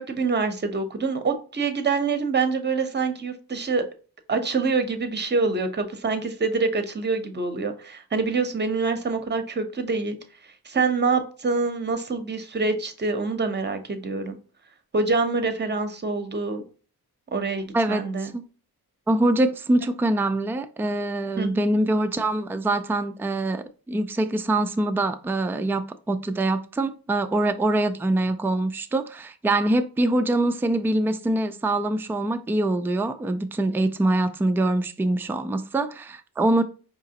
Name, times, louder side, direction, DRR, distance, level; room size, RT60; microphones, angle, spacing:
voice 1, 0.0-3.8 4.3-10.2 10.6-14.4 14.9-16.6 17.3-18.3 21.4-21.5, right 4 dB, 25° right, 0.7 m, -25 dB
voice 2, 17.7-18.4 19.1-36.6, right 1 dB, 5° right, 0.3 m, -24 dB
4.7 x 2.9 x 2.8 m
cardioid pair, 75°, 39 cm